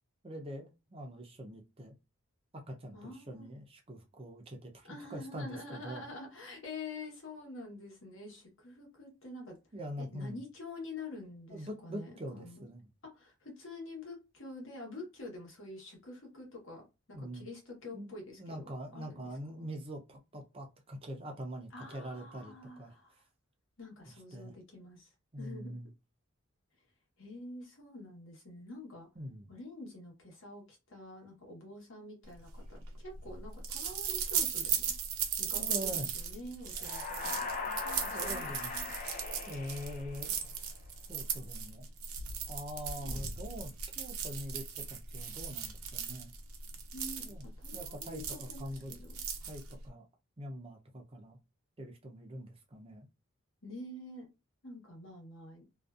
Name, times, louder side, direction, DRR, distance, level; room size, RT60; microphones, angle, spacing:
voice 1, 0.2-1.9 2.5-6.0 9.7-10.4 11.5-12.9 17.1-17.4 17.9-18.1 18.4-23.0 24.3-24.5 25.3-25.9 29.2-29.5 35.5-36.1 38.1-38.7 39.5-40.5 41.1-41.9 42.5-46.3 47.2-47.5 47.7-48.9 49.5-50.0 50.4-51.4 51.8-53.1, equal, 25° right, 0.5 m, -44 dB
voice 2, 2.9-3.5 4.8-9.6 10.1-12.6 13.1-19.7 21.7-23.2 23.8-25.1 25.4-25.7 27.2-29.1 29.5-34.8 35.4-38.9 43.0-43.4 46.9-49.2 53.6-54.3 54.6-55.6, left 2 dB, 60° left, 1.0 m, -47 dB
sound 1, 32.4-49.9, right 7 dB, 85° right, 0.6 m, -37 dB
sound 2, 36.7-40.6, left 4 dB, 40° left, 0.4 m, -40 dB
2.5 x 2.2 x 2.3 m
head